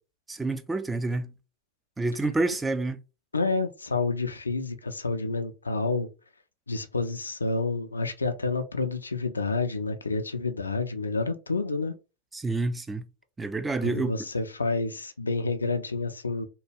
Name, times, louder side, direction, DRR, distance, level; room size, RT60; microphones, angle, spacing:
voice 1, 0.3-1.3 2.0-3.0 12.3-13.0 13.4-14.3, right 2 dB, 10° right, 0.3 m, -28 dB
voice 2, 3.3-6.1 6.7-11.9 13.8-16.4, left 3 dB, 75° left, 0.4 m, -29 dB
2.8 x 2.3 x 3.2 m
figure-of-eight pair, 90°, 0 cm